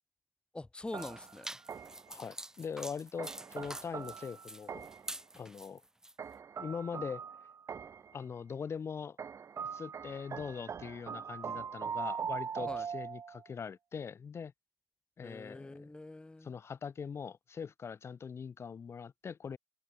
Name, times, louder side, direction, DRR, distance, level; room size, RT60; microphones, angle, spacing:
voice 1, 0.5-1.5 12.6-12.9 15.2-16.5, left 2 dB, 15° left, 0.9 m, -44 dB
sound 1, 0.9-6.1, right 1 dB, 10° right, 0.9 m, -47 dB
sound 2, 0.9-2.1 3.2-5.2 6.2-8.2 9.2-13.5, right 7 dB, 55° right, 0.4 m, -41 dB
voice 2, 2.1-4.9 5.4-5.8 6.6-7.2 8.1-9.2 9.7-14.5 15.2-15.9 16.4-19.6, left 6 dB, 50° left, 0.3 m, -42 dB
wide cardioid pair, 130°, 6 cm